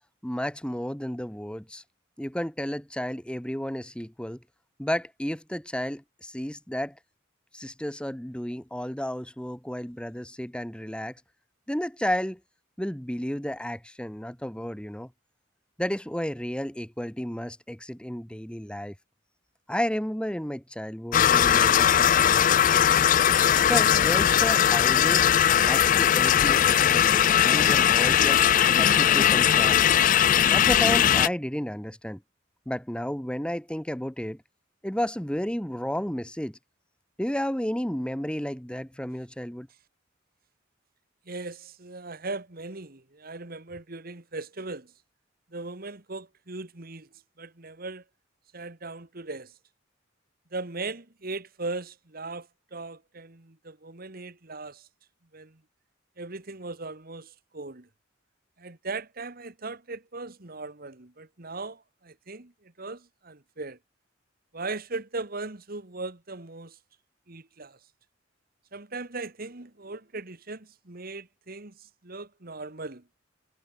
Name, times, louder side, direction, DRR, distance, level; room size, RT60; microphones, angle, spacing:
voice 1, 0.2-1.8 2.2-4.4 4.8-7.0 7.5-11.1 11.7-12.4 12.8-15.1 15.8-18.9 19.7-22.7 23.7-25.3 25.7-28.4 28.8-29.8 30.5-32.2 32.7-34.4 34.8-36.6 37.2-39.7, equal, 5° left, 1.3 m, -32 dB
sound 1, 21.1-31.3, left 10 dB, 40° left, 0.4 m, -20 dB
voice 2, 41.3-44.9 45.5-47.1 47.4-48.0 48.5-49.5 50.5-54.9 55.3-55.6 56.2-57.9 58.6-63.8 64.5-66.8 67.3-67.8 68.7-73.0, right 3 dB, 50° right, 1.7 m, -38 dB
head